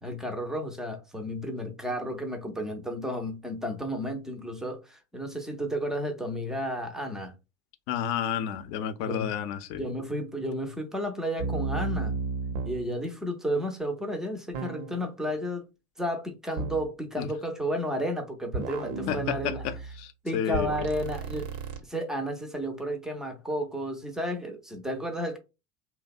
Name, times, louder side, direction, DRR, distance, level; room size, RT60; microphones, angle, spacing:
voice 1, 0.0-7.3 9.0-9.3 9.7-12.2 12.6-15.6 16.0-19.6 20.2-21.5 21.8-25.4, equal, ahead, 0.3 m, -32 dB
voice 2, 7.9-9.8 17.2-17.3 19.1-20.9, left 9 dB, 55° left, 0.5 m, -31 dB
sound 1, 11.4-12.9 14.5-15.1 16.6-16.9 18.5-20.0 20.5-21.8, right 4 dB, 65° right, 0.6 m, -33 dB
2.7 x 2.1 x 2.3 m
hypercardioid pair, 75°, 41 cm